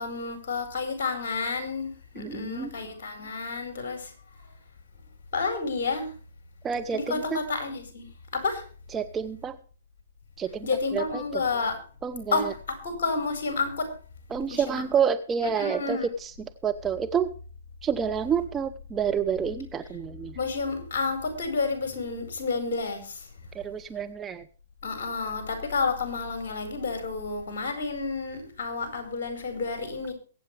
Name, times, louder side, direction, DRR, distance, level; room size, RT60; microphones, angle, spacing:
voice 1, 0.0-4.1 4.4-4.5 5.3-6.1 6.9-8.6 10.6-11.8 12.3-13.9 14.5-14.8 15.6-16.1 20.3-23.3 24.8-30.1, left 4 dB, 50° left, 6 dB, 4.9 m, -30 dB
voice 2, 2.2-2.7 6.6-7.4 8.9-9.6 10.4-11.4 12.0-12.5 14.3-17.3 17.8-20.4 23.5-24.4, right 7 dB, 15° right, 8 dB, 0.8 m, -29 dB
23.0 x 8.9 x 3.4 m, 0.39 s
figure-of-eight pair, 120°, 0 cm